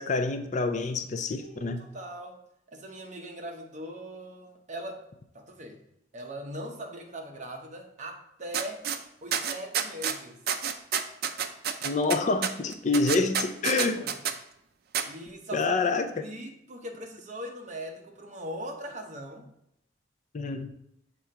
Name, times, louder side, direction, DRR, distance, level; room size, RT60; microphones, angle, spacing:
voice 1, 0.0-1.8 11.8-14.0 15.5-16.3 20.3-20.7, left 3 dB, 40° left, 8 dB, 0.4 m, -27 dB
voice 2, 1.4-2.4 2.7-5.0 5.3-5.8 6.1-8.9 9.2-10.4 13.9-14.2 15.1-15.8 16.1-19.5, right 1 dB, 40° right, 2 dB, 0.9 m, -40 dB
Cuaderno Espiral, 8.5-9.0 9.3-10.2 10.5-14.3 14.9-15.0, right 8 dB, 55° right, 0.5 m, -29 dB
7.0 x 3.8 x 4.4 m, 0.77 s
head